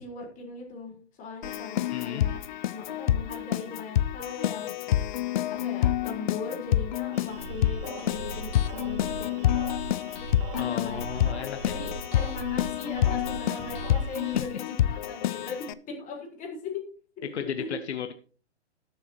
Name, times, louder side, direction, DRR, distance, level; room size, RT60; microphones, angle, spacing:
voice 1, 0.0-2.4 2.7-4.7 5.5-9.6 10.5-11.3 11.6-16.7 17.2-17.8, left 3 dB, 20° left, 4.2 m, -39 dB
Keyboard (musical), 1.4-15.7, left 12 dB, 40° left, 0.6 m, -28 dB
voice 2, 1.9-2.3 10.6-11.8 14.3-14.6 17.2-18.1, left 8 dB, 65° left, 1.2 m, -35 dB
sound 1, 7.1-14.5, right 3 dB, 50° right, 1.7 m, -39 dB
19.5 x 7.2 x 3.0 m
hypercardioid pair, 130°, 35 cm